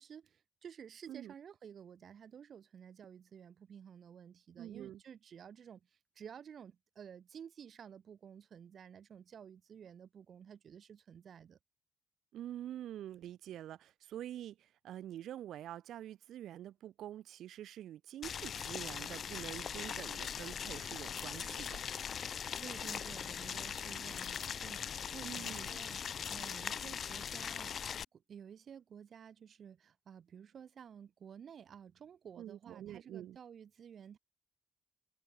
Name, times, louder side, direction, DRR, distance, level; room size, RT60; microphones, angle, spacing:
voice 1, 0.0-11.6 22.6-34.2, right 8 dB, 50° right, 2.3 m, -53 dB
voice 2, 4.6-5.0 12.3-21.9 25.2-25.7 32.4-33.4, right 12 dB, 90° right, 2.4 m, -46 dB
Boiling, 18.2-28.0, left 7 dB, 50° left, 1.1 m, -41 dB
cardioid pair, 145°, 0 cm